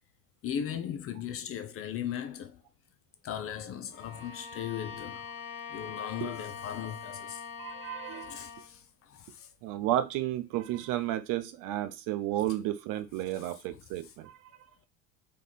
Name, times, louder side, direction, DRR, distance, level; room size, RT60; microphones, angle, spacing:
voice 1, 0.4-2.6 3.2-5.2 5.7-7.4 8.2-9.5 13.3-13.5 14.0-14.1, left 9 dB, 30° left, 0.6 m, -38 dB
Bowed string instrument, 3.9-8.8, left 6 dB, 55° left, 2.0 m, -43 dB
voice 2, 7.6-8.4 9.6-14.4, right 13 dB, 45° right, 0.8 m, -32 dB
3.3 x 3.3 x 4.1 m
figure-of-eight pair, 70°, 43 cm